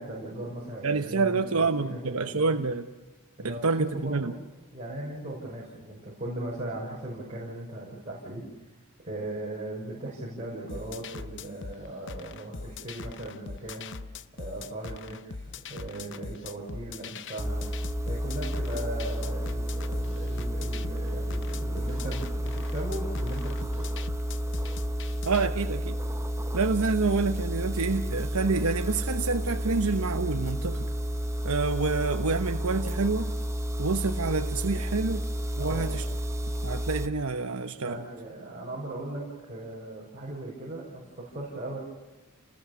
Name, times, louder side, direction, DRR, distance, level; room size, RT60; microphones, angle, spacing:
voice 1, 0.0-2.6 3.4-4.3 4.7-8.7 9.0-17.6 18.1-23.9 35.6-35.9 37.8-41.8, right 1 dB, 30° right, -5 dB, 6.2 m, -38 dB
voice 2, 0.8-2.9 3.4-4.4 25.3-26.0 26.5-30.9 31.4-33.3 33.8-35.3 35.6-36.1 36.6-38.1, right 4 dB, 75° right, 7 dB, 1.0 m, -28 dB
sound 1, 10.7-25.5, left 4 dB, 55° left, 0.8 m, -41 dB
sound 2, 17.4-37.1, equal, 15° right, 1.1 m, -31 dB
29.5 x 20.5 x 7.0 m, 1.2 s
head